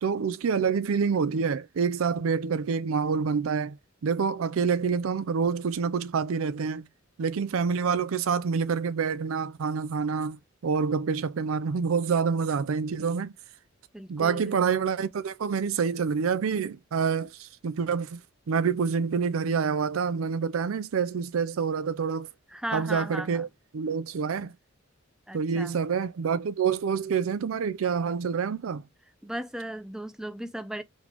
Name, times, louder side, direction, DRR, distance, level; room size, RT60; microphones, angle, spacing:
voice 1, 0.0-3.8 4.0-6.9 7.2-13.3 14.1-18.2 18.5-22.3 22.7-23.5 23.7-24.5 25.3-28.8, right 6 dB, 75° right, 0.4 m, -27 dB
voice 2, 13.9-14.6 22.5-23.5 25.3-25.8 29.2-30.8, right 1 dB, 5° right, 0.5 m, -36 dB
4.0 x 3.7 x 2.9 m
head